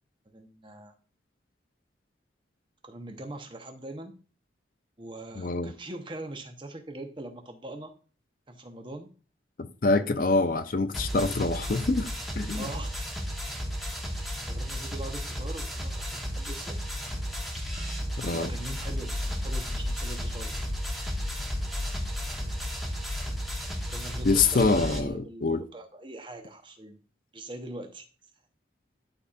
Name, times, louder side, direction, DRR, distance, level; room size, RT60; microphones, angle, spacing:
voice 1, 0.3-0.9 2.8-4.2 5.0-7.9 8.5-9.1 12.5-13.4 14.5-16.8 18.3-20.6 23.9-27.0 27.3-28.1, right 1 dB, 25° right, 0.9 m, -42 dB
voice 2, 5.4-5.7 9.8-12.1 12.4-12.7 18.2-18.5 24.2-25.6, left 3 dB, 50° left, 0.6 m, -25 dB
sound 1, 10.9-25.0, equal, ahead, 1.0 m, -34 dB
sound 2, 18.7-25.1, left 1 dB, 65° left, 1.6 m, -36 dB
11.5 x 4.1 x 2.4 m
head